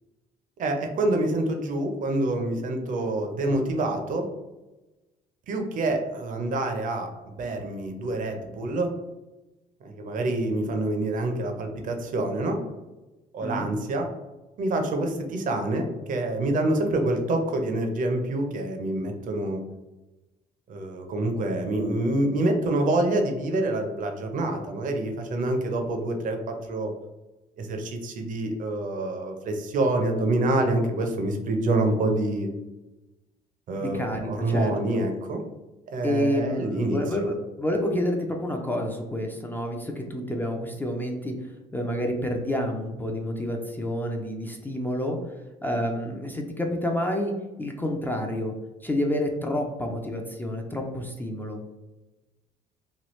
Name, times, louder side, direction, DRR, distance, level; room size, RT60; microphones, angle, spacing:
voice 1, 0.6-4.3 5.5-7.1 7.4-8.9 9.8-12.6 13.3-14.1 14.6-19.6 20.7-26.9 27.6-32.5 33.7-35.4 35.9-37.0, right 2 dB, 50° right, 4 dB, 0.6 m, -26 dB
voice 2, 33.8-35.0 36.0-41.3 41.7-45.2 45.6-47.3 47.6-48.5 48.8-51.6, left 1 dB, 10° left, 2 dB, 0.4 m, -29 dB
3.1 x 2.3 x 3.0 m, 1.1 s
cardioid pair, 110°, 17 cm